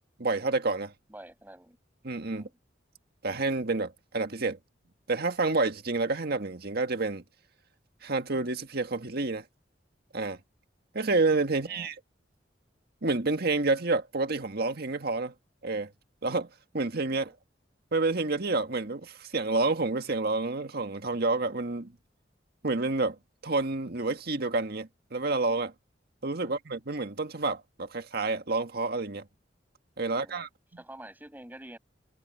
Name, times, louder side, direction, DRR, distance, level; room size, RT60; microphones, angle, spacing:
voice 1, 0.2-0.9 2.0-2.5 3.2-4.6 5.1-7.2 8.0-9.4 10.1-10.4 10.9-12.0 13.0-15.3 15.6-15.9 16.2-16.5 16.7-17.3 17.9-21.9 22.6-23.2 23.4-25.7 26.2-29.2 30.0-30.5, right 3 dB, 60° right, 1.8 m, -29 dB
voice 2, 1.1-1.8 2.3-2.5 11.5-11.9 17.1-17.3 26.4-26.6 30.0-30.5 30.8-31.8, right 1 dB, 10° right, 6.4 m, -48 dB
head